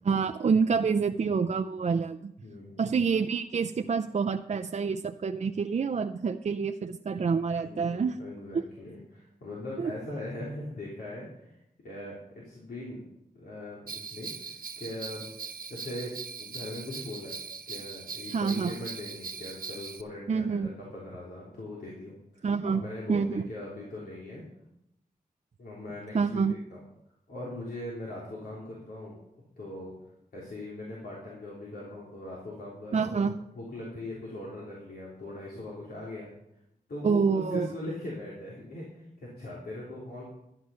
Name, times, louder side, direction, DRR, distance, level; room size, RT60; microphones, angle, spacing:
voice 1, 0.0-2.3 2.8-8.2 8.5-8.6 9.8-9.9 18.3-18.7 20.3-20.7 22.4-22.8 23.1-23.5 26.1-26.5 32.9-33.4 37.0-37.7, right 5 dB, 45° right, 7 dB, 0.5 m, -27 dB
voice 2, 2.4-2.9 7.6-13.1 13.3-15.2 15.7-17.3 17.6-24.5 25.6-26.8 27.3-29.2 29.6-29.9 30.3-33.3 33.5-36.3 36.9-40.2, left 1 dB, 90° left, -5 dB, 3.4 m, -40 dB
Bell, 13.9-20.0, right 5 dB, 70° right, 1.2 m, -40 dB
12.5 x 9.8 x 5.6 m, 0.81 s
wide cardioid pair, 85°, 16 cm